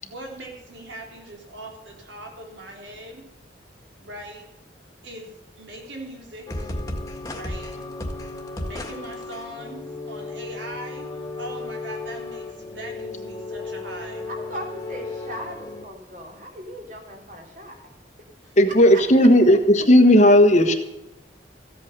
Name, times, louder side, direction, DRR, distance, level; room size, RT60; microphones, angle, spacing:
voice 1, 0.0-3.3 4.0-4.4 5.0-5.3 5.6-6.7 7.3-7.9 8.6-14.3 18.4-18.5 18.9-20.1, right 1 dB, 85° right, 1 dB, 3.7 m, -40 dB
sound 1, 6.5-15.9, left 2 dB, 20° left, 1.8 m, -34 dB
voice 2, 14.3-17.9 18.7-19.0, equal, 45° right, 1 dB, 3.2 m, -38 dB
voice 3, 18.6-20.7, left 1 dB, 40° left, 7 dB, 1.3 m, -14 dB
15.0 x 8.7 x 6.7 m, 0.98 s
head